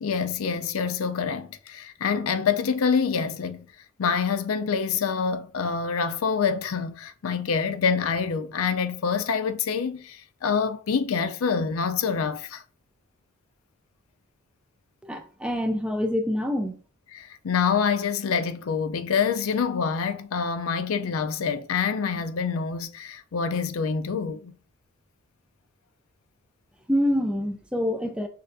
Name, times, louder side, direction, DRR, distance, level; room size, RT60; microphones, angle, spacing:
voice 1, 0.0-3.7 4.0-12.6 17.1-24.5, left 6 dB, 80° left, 0.4 m, -26 dB
voice 2, 15.0-16.8 26.9-28.3, left 1 dB, 5° right, 0.3 m, -26 dB
6.4 x 2.5 x 2.5 m
head